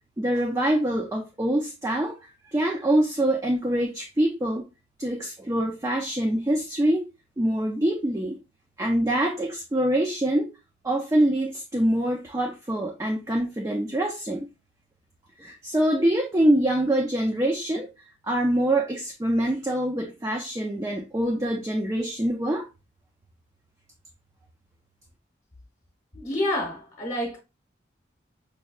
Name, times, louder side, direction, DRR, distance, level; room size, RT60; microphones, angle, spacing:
voice 1, 0.2-2.2 2.4-4.6 5.0-7.1 7.4-8.4 8.8-10.5 10.8-14.5 15.4-17.9 18.2-22.7, right 1 dB, 15° right, 0.4 m, -25 dB
voice 2, 26.1-27.4, left 1 dB, 40° left, 0.9 m, -28 dB
5.2 x 2.2 x 2.3 m
head